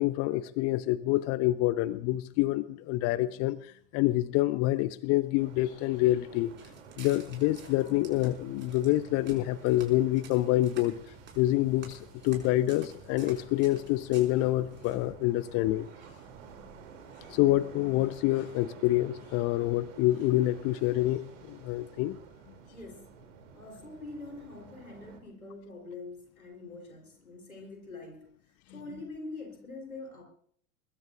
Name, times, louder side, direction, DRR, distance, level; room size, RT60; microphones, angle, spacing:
voice 1, 0.0-6.5 7.0-10.9 11.4-15.9 17.3-22.2, left 16 dB, 35° left, 17 dB, 0.7 m, -27 dB
sound 1, 5.4-25.2, right 6 dB, 60° right, 3.2 m, -52 dB
Walk footsteps, 6.4-15.1, right 5 dB, 25° right, 5.6 m, -52 dB
voice 2, 22.7-23.1 23.5-28.3 28.7-30.2, left 3 dB, 85° left, 3 dB, 4.2 m, -44 dB
22.5 x 21.0 x 2.6 m, 0.62 s
figure-of-eight pair, 75°, 41 cm